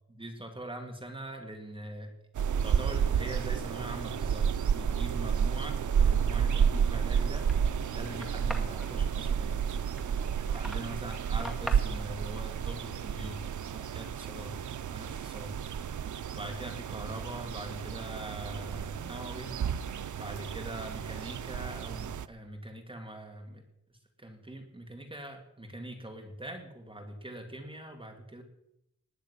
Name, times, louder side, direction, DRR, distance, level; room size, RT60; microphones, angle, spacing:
voice 1, 0.1-2.1 2.6-7.5 7.9-9.6 10.5-14.6 14.9-15.6 16.3-19.5 20.1-23.6 24.2-28.4, right 1 dB, 20° right, 3 dB, 2.1 m, -42 dB
sound 1, 2.4-22.3, right 7 dB, 85° right, 0.6 m, -31 dB
sound 2, 7.0-12.8, right 5 dB, 55° right, 1.7 m, -52 dB
sound 3, 7.4-11.8, equal, ahead, 2.0 m, -45 dB
19.5 x 6.5 x 10.0 m, 0.81 s
wide cardioid pair, 170°, 29 cm